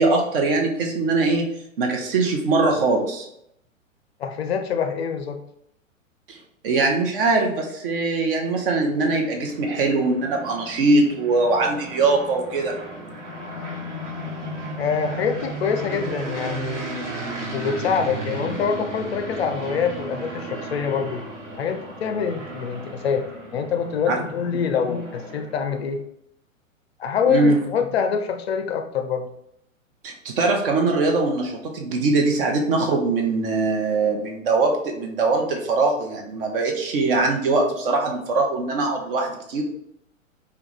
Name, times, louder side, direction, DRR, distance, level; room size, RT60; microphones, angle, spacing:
voice 1, 0.0-1.5 1.8-3.3 6.3-6.4 6.6-12.8 24.1-24.2 24.5-24.6 27.3-27.6 30.0-39.6, right 3 dB, 40° right, 2 dB, 0.8 m, -22 dB
voice 2, 4.2-5.4 14.8-16.8 17.5-21.2 21.6-23.2 23.5-26.0 27.0-29.3, left 6 dB, 50° left, 6 dB, 0.4 m, -25 dB
sound 1, 8.7-25.8, right 1 dB, 60° right, 1.1 m, -35 dB
3.5 x 2.3 x 3.0 m, 0.76 s
figure-of-eight pair, 110°, 40 cm